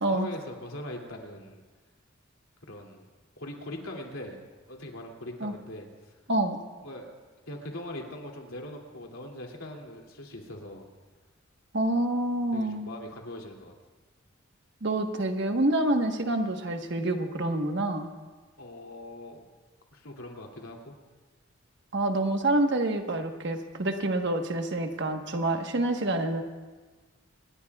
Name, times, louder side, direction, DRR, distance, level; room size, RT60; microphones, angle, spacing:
voice 1, 0.1-1.6 2.6-3.0 3.4-4.4 4.7-6.1 6.8-7.1 7.5-10.8 12.5-13.7 18.6-19.4 19.9-20.9, left 1 dB, 80° left, 0 dB, 2.7 m, -41 dB
voice 2, 6.3-6.6 11.7-12.9 14.8-18.1 21.9-26.4, right 1 dB, 55° right, 5 dB, 1.3 m, -27 dB
26.0 x 20.5 x 2.4 m, 1.3 s
head